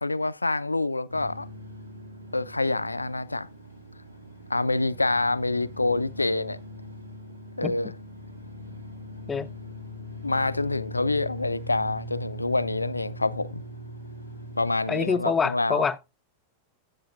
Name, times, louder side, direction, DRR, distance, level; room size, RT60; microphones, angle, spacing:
voice 1, 0.0-1.5 2.3-3.5 4.5-6.6 7.6-7.9 10.2-13.6 14.6-15.8, left 2 dB, 80° left, 0.4 m, -26 dB
sound 1, 1.1-15.2, left 1 dB, 80° right, 2.2 m, -41 dB
voice 2, 7.6-7.9 9.3-9.5 14.9-16.0, left 5 dB, 15° left, 0.6 m, -26 dB
15.5 x 6.9 x 2.4 m
figure-of-eight pair, 90°, 0 cm